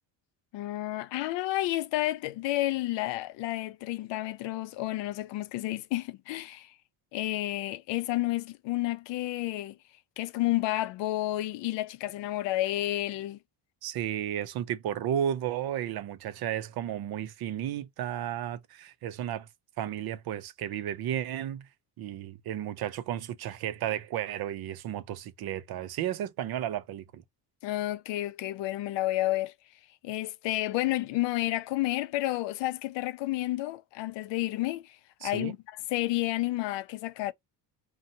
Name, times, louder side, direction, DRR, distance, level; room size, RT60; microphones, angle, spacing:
voice 1, 0.5-6.7 7.1-9.8 10.2-13.4 27.6-29.5 30.0-35.6 35.9-37.3, left 16 dB, 80° left, 0.5 m, -30 dB
voice 2, 13.8-19.5 19.8-21.7 22.0-27.2 35.2-35.5, right 10 dB, 60° right, 0.6 m, -33 dB
2.8 x 2.2 x 2.6 m
cardioid pair, 140°, 43 cm